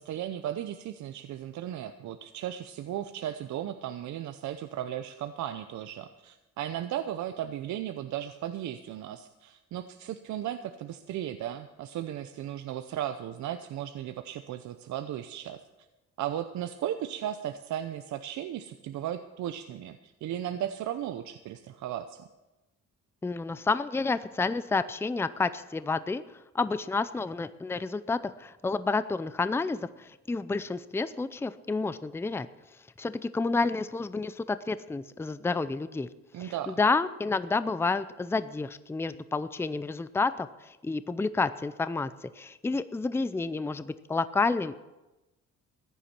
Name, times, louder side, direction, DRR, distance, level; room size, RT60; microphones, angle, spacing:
voice 1, 0.0-15.6 16.2-22.3 36.3-36.8, right 11 dB, 80° right, 9 dB, 0.7 m, -36 dB
voice 2, 23.2-26.2 26.5-32.5 33.0-36.1 36.4-44.8, left 3 dB, 10° left, 14 dB, 0.5 m, -30 dB
15.0 x 10.0 x 5.9 m, 1.0 s
cardioid pair, 105°, 29 cm